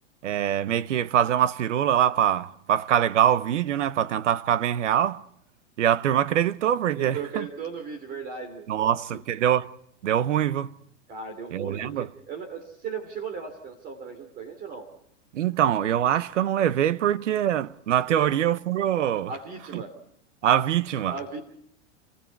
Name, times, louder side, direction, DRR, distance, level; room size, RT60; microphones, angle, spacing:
voice 1, 0.2-5.2 5.8-7.5 8.7-9.7 10.0-10.7 11.5-12.1 15.3-19.3 19.7-19.8 20.4-21.2, right 10 dB, 90° right, 1.1 m, -24 dB
voice 2, 6.9-9.2 11.1-14.9 18.2-18.3 19.3-19.9 21.1-21.4, right 5 dB, 25° right, 3.1 m, -37 dB
29.5 x 21.0 x 4.7 m
supercardioid pair, 160°, 36 cm